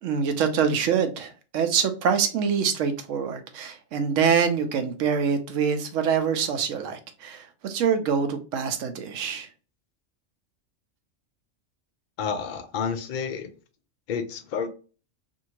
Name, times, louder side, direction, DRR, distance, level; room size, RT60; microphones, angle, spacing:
voice 1, 0.0-9.5, right 6 dB, 80° right, 1.0 m, -25 dB
voice 2, 12.2-13.5 14.1-14.7, left 6 dB, 65° left, 0.5 m, -30 dB
2.7 x 2.6 x 2.8 m
omnidirectional pair, 1.3 m